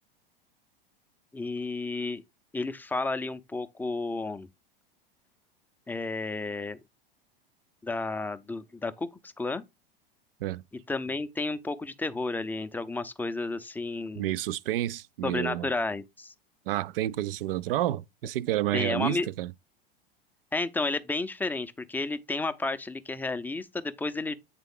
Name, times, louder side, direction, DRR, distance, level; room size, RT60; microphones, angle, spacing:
voice 1, 1.3-2.2 2.5-4.5 5.9-6.8 7.8-9.6 10.9-14.3 15.2-16.3 18.7-19.3 20.5-24.3, left 3 dB, 5° left, 0.5 m, -32 dB
voice 2, 14.2-15.7 16.7-19.5, right 14 dB, 70° right, 0.5 m, -30 dB
8.2 x 3.7 x 3.5 m
hypercardioid pair, 95°, 29 cm